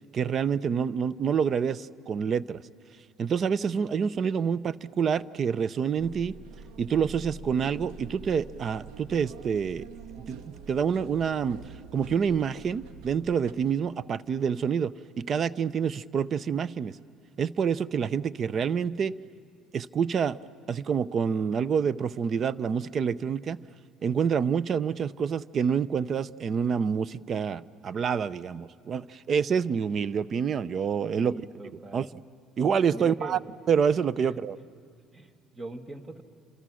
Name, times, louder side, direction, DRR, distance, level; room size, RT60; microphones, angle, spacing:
voice 1, 0.1-2.6 3.2-6.4 6.8-9.9 10.3-11.6 11.9-16.9 17.4-19.1 19.7-20.4 20.7-23.6 24.0-31.3 31.9-32.1 32.6-33.4 33.7-34.6, right 7 dB, 45° right, 18 dB, 0.6 m, -27 dB
sound 1, 6.0-13.5, right 5 dB, 80° right, 1.5 m, -45 dB
voice 2, 31.2-32.0 32.9-33.4 34.2-34.4 35.1-36.2, right 2 dB, 25° right, 7 dB, 1.9 m, -41 dB
29.5 x 27.0 x 6.3 m, 2.2 s
supercardioid pair, 100°, 0 cm